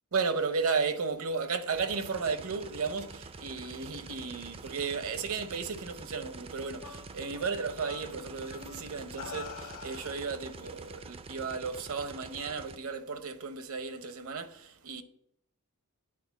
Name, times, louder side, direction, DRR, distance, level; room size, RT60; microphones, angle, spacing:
voice 1, 0.1-15.0, right 5 dB, 65° right, 0.8 m, -34 dB
sound 1, 1.7-12.8, right 4 dB, 25° right, 0.4 m, -47 dB
sound 2, 3.1-6.0 6.3-6.7 8.0-8.2 8.8-11.0, left 6 dB, 65° left, 1.2 m, -49 dB
sound 3, 6.8-9.9, left 6 dB, 85° left, 0.7 m, -49 dB
8.6 x 4.3 x 7.1 m
head